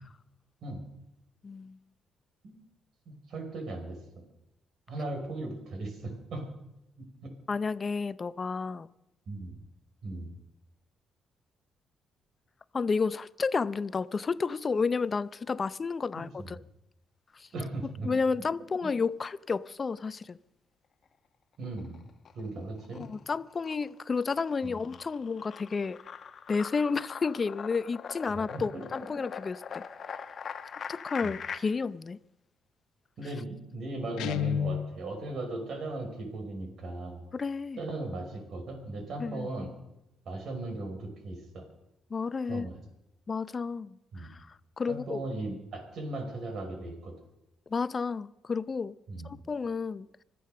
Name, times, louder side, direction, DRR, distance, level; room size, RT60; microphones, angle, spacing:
voice 1, 1.4-1.8 7.5-8.9 12.7-16.6 17.3-17.5 18.0-20.4 22.9-26.0 26.5-29.8 30.1-30.2 30.9-32.2 37.3-37.8 39.2-39.5 42.1-42.7 43.3-45.2 47.7-48.9 49.2-50.1, left 4 dB, 35° left, 0.5 m, -31 dB
voice 2, 3.1-4.0 4.9-6.5 7.0-7.1 9.3-9.6 10.0-10.3 16.2-16.5 17.5-18.1 18.8-18.9 21.6-22.0 22.4-23.1 24.6-24.8 28.3-28.8 31.2-31.3 33.2-37.2 37.8-39.7 40.3-41.6 42.5-42.8 44.1-44.3 44.9-47.1 49.1-49.3, right 2 dB, 65° right, 5.3 m, -37 dB
sound 1, 21.6-22.5 22.8-31.6, left 7 dB, 50° left, 1.1 m, -42 dB
Guitar, 34.2-35.0, left 9 dB, 90° left, 0.7 m, -30 dB
25.0 x 8.6 x 6.6 m
cardioid pair, 90°, 0 cm